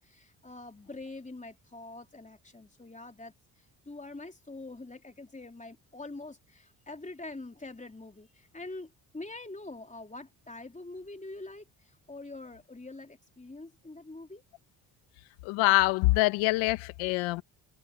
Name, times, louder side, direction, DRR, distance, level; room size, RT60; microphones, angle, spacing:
voice 1, 0.0-3.3 3.8-14.4, left 2 dB, 15° left, 3.5 m, -44 dB
voice 2, 15.4-17.4, left 21 dB, 85° left, 1.7 m, -25 dB
supercardioid pair, 55°, 47 cm